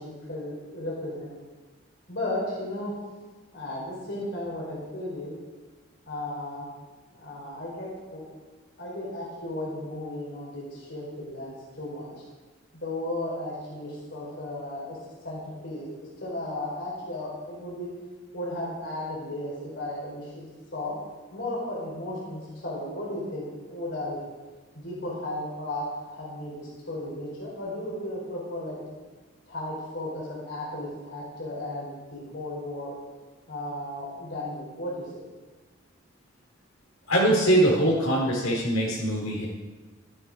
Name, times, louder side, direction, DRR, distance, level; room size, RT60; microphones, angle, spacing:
voice 1, 0.0-1.3 2.1-2.9 3.5-5.3 6.1-6.7 7.1-8.2 8.8-12.1 12.7-15.0 15.2-17.9 18.3-20.5 20.7-20.9 21.3-24.2 24.7-28.8 29.5-32.9 33.5-35.2, left 1 dB, 60° left, -5 dB, 4.4 m, -35 dB
voice 2, 37.1-39.4, right 1 dB, 85° left, -5 dB, 4.7 m, -22 dB
13.5 x 11.0 x 5.0 m, 1.3 s
head